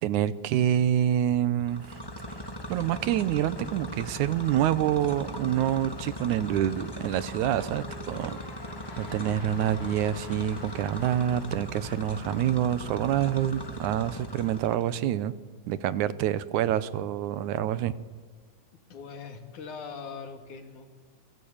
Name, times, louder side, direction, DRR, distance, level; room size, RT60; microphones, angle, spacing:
voice 1, 0.0-2.0 2.7-8.4 9.0-15.3 15.7-17.9, right 11 dB, 80° right, 16 dB, 2.4 m, -27 dB
sound 1, 1.6-15.0, left 1 dB, 20° left, 0.5 m, -39 dB
sound 2, 6.4-11.7, left 3 dB, 45° left, 4.2 m, -48 dB
voice 2, 18.9-21.0, left 5 dB, 80° left, 6 dB, 4.0 m, -41 dB
27.5 x 22.0 x 8.8 m, 1.5 s
omnidirectional pair, 3.4 m